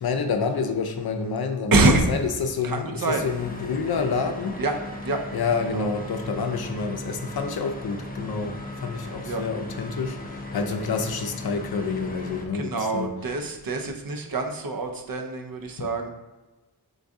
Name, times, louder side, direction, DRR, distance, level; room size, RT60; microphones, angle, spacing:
voice 1, 0.0-4.6 5.3-13.1 15.8-15.9, left 5 dB, 65° left, 6 dB, 0.5 m, -28 dB
voice 2, 1.7-2.1 2.6-3.3 4.6-4.8 5.0-5.2 5.7-5.8 9.2-9.4 12.5-16.1, right 2 dB, 55° right, 4 dB, 0.6 m, -25 dB
sound 1, 3.1-12.5, left 1 dB, 20° left, 0.6 m, -37 dB
3.7 x 2.6 x 3.5 m, 1.1 s
wide cardioid pair, 45°, 41 cm